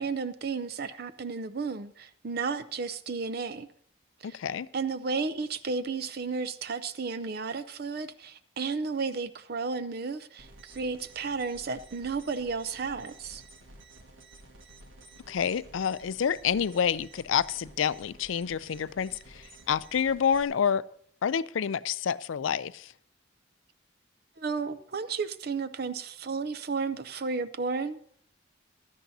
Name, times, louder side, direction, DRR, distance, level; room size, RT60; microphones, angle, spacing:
voice 1, 0.0-3.7 4.3-4.4 4.7-13.4 24.4-28.0, right 4 dB, 55° right, 0.5 m, -33 dB
voice 2, 4.3-4.7 15.3-20.8 21.2-22.9, left 7 dB, 85° left, 0.4 m, -28 dB
sound 1, 10.4-20.4, right 2 dB, 85° right, 1.7 m, -52 dB
16.0 x 12.5 x 2.7 m
head